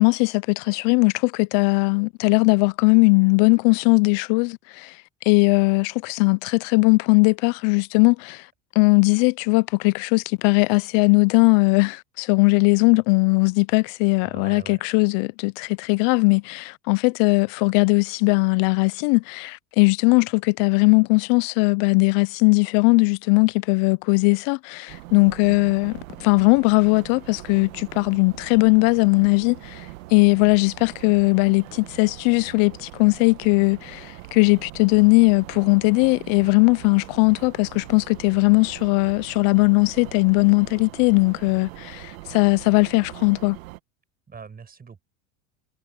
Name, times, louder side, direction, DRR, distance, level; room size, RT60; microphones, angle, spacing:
voice 1, 0.0-8.5 8.8-43.6, left 31 dB, 55° left, 0.5 m, -19 dB
voice 2, 14.2-14.8 44.3-45.0, right 5 dB, 20° right, 6.4 m, -41 dB
sound 1, 24.9-43.8, right 20 dB, 80° right, 1.4 m, -42 dB
supercardioid pair, 115°, 40 cm